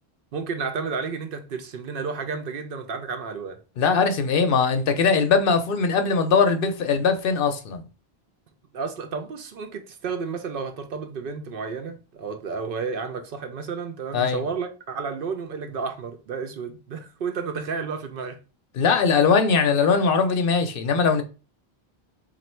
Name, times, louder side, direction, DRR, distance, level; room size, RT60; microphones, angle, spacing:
voice 1, 0.3-3.6 8.7-18.4, right 5 dB, 65° right, 0.7 m, -32 dB
voice 2, 3.8-7.9 14.1-14.4 18.8-21.2, left 5 dB, 65° left, 0.7 m, -21 dB
3.1 x 2.5 x 4.3 m
omnidirectional pair, 1.1 m